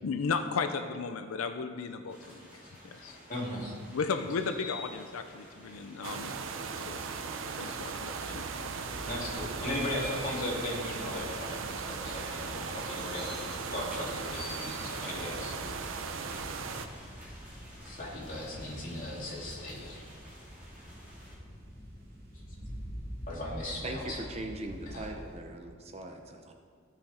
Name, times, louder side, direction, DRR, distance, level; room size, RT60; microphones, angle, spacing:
voice 1, 0.0-3.2 3.9-6.3 6.8-7.0 7.5-8.4, left 5 dB, 85° left, 8 dB, 0.5 m, -35 dB
sound 1, 2.1-21.3, equal, 5° right, 2.3 m, -49 dB
voice 2, 3.3-3.7 7.7-7.8 9.0-15.6 17.8-20.0 23.3-24.2 24.9-25.1, left 1 dB, 40° left, -6 dB, 2.7 m, -37 dB
sound 2, 6.0-16.9, right 5 dB, 70° right, 0.6 m, -38 dB
sound 3, 8.7-25.4, equal, 45° right, 2.7 m, -47 dB
voice 3, 23.8-26.5, right 2 dB, 30° right, 4 dB, 0.7 m, -40 dB
15.5 x 5.7 x 4.3 m, 2.1 s
head